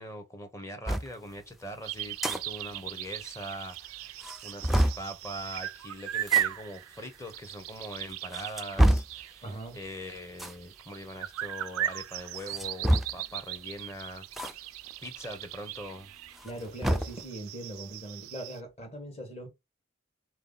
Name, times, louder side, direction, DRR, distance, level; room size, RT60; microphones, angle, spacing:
voice 1, 0.0-4.1 4.4-9.4 9.7-14.7 15.0-16.1, equal, 15° left, 0.7 m, -42 dB
sound 1, 0.9-1.1 2.0-2.4 2.7-2.8 3.1-3.2 3.7-3.8 4.2-5.1 6.2-6.4 7.3-7.4 8.1-9.2 10.3-10.6 12.4-13.3 14.3-14.5 14.9-15.0 16.3-17.2, right 1 dB, ahead, 0.3 m, -27 dB
sound 2, 1.8-18.6, right 13 dB, 80° right, 0.3 m, -37 dB
voice 2, 9.4-9.8 16.4-19.5, right 1 dB, 30° left, 1.2 m, -40 dB
3.6 x 2.9 x 3.8 m
head